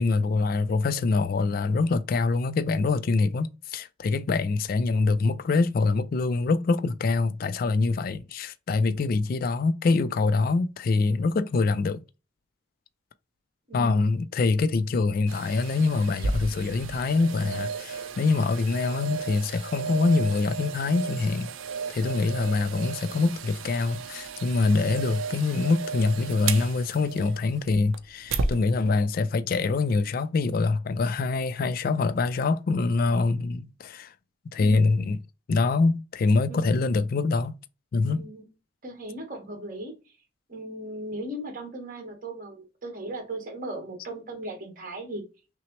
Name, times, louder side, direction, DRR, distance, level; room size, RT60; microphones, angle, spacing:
voice 1, 0.0-12.0 13.7-21.5 21.9-34.1 34.5-35.2 35.5-37.6 37.9-38.2, left 3 dB, 45° left, 0.3 m, -24 dB
voice 2, 13.7-14.1 34.5-35.1 36.5-36.9 38.1-38.4 38.8-39.9 40.5-45.2, right 1 dB, 45° right, 1.3 m, -37 dB
sound 1, 15.3-28.6 29.1-29.2, right 4 dB, 80° right, 0.5 m, -34 dB
5.7 x 2.0 x 3.0 m
head